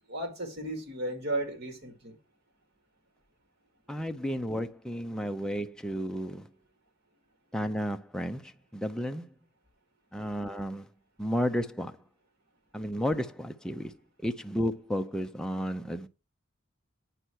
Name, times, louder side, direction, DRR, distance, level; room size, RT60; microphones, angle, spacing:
voice 1, 0.1-2.2, right 1 dB, 55° right, 2.3 m, -34 dB
voice 2, 3.9-6.5 7.5-9.3 10.1-10.9 11.2-12.0 12.7-13.9 14.2-16.1, equal, 5° left, 0.5 m, -32 dB
9.1 x 5.6 x 6.3 m
head